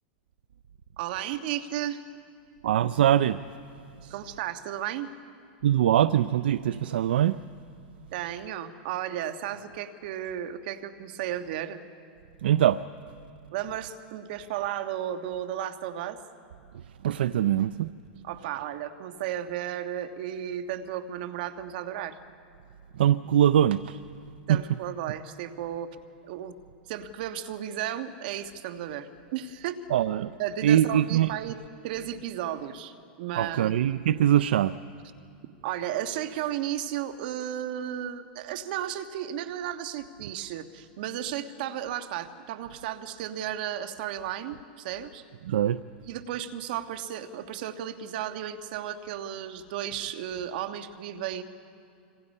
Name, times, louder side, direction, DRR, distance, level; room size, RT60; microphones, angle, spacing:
voice 1, 1.0-2.0 4.0-5.1 8.1-11.8 13.5-16.2 18.2-22.2 24.5-25.9 26.3-26.6 26.9-29.8 30.4-31.6 31.8-33.7 35.6-45.2 46.1-51.4, right 11 dB, 60° right, 8 dB, 1.5 m, -34 dB
voice 2, 2.6-3.4 5.6-7.4 12.4-12.8 17.0-17.9 23.0-24.0 24.5-24.6 29.9-30.3 30.6-31.3 33.4-34.8 45.5-45.8, right 11 dB, 85° right, 15 dB, 0.5 m, -22 dB
25.5 x 25.5 x 5.5 m, 2.5 s
supercardioid pair, 140°, 5 cm